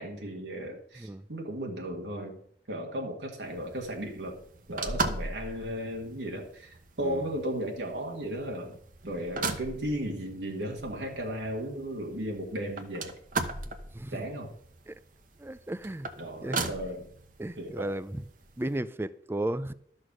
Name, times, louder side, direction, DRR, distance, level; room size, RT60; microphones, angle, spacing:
voice 1, 0.0-2.4 2.7-4.4 4.7-8.8 9.1-13.1 14.1-14.5 16.2-17.1 17.6-18.0, right 1 dB, 85° right, 1.9 m, -35 dB
sound 1, 3.4-18.8, right 3 dB, 50° right, 1.0 m, -39 dB
voice 2, 15.4-16.1 16.4-16.7 17.4-18.2 18.6-19.7, right 1 dB, 15° right, 0.4 m, -34 dB
12.5 x 6.4 x 6.2 m
head